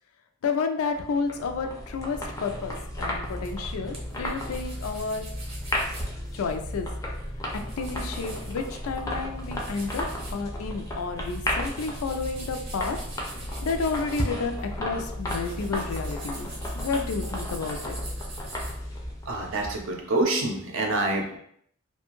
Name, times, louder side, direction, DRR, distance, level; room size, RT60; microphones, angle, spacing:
voice 1, 0.4-5.2 6.3-6.9 7.8-10.0 10.3-13.0 13.2-16.5 16.8-18.0, left 4 dB, 90° left, 6 dB, 0.4 m, -31 dB
sound 1, 1.0-20.0, left 1 dB, 15° left, 0.4 m, -34 dB
sound 2, 1.9-18.8, right 1 dB, 30° right, 0.7 m, -42 dB
voice 2, 19.3-21.4, right 2 dB, 65° right, 2 dB, 0.6 m, -26 dB
2.5 x 2.2 x 2.9 m, 0.67 s
head